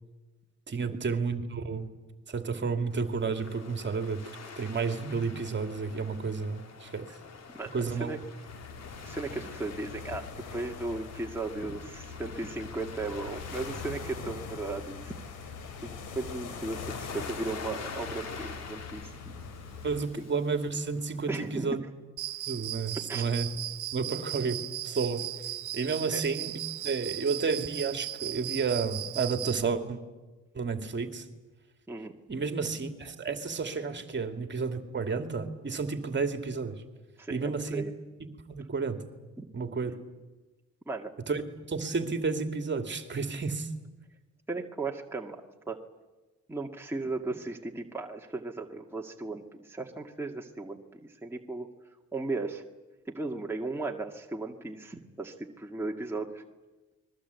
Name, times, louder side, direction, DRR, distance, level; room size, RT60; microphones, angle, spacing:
voice 1, 0.7-1.9 2.3-4.2 4.6-7.1 7.7-8.1 19.8-21.8 22.5-23.5 23.9-25.3 25.7-26.5 26.8-30.0 30.5-31.3 32.3-36.8 37.3-37.8 38.5-39.0 39.5-39.9 41.3-43.7, right 4 dB, 35° right, 7 dB, 2.6 m, -31 dB
Waves surf, 2.9-21.7, left 5 dB, 60° left, 2.6 m, -46 dB
sound 1, 8.5-20.1, left 5 dB, 85° left, 3.1 m, -43 dB
voice 2, 9.0-15.1 15.8-19.3 21.3-21.8 22.9-23.3 26.1-26.2 31.9-32.1 37.2-37.9 39.4-39.5 40.9-41.1 44.5-45.8 46.5-51.7 52.1-52.6 53.1-56.4, right 3 dB, 10° right, 0 dB, 2.1 m, -36 dB
Cricket, 22.2-29.6, right 14 dB, 80° right, 1.3 m, -37 dB
29.5 x 21.5 x 8.3 m, 1.2 s
cardioid pair, 90°, 30 cm